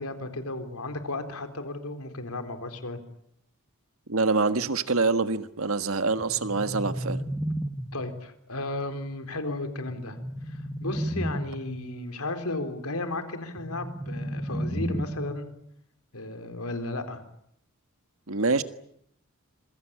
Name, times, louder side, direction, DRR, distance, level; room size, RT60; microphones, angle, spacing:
voice 1, 0.0-3.0 7.9-10.2 10.5-15.5 16.1-17.2, left 2 dB, 90° left, 7 dB, 4.0 m, -34 dB
voice 2, 4.1-7.2 18.3-18.6, right 3 dB, 70° right, 11 dB, 1.6 m, -25 dB
sound 1, 6.2-8.2 9.9-11.8 13.6-15.5, right 1 dB, 5° right, 1.4 m, -33 dB
27.0 x 23.5 x 8.8 m, 0.74 s
head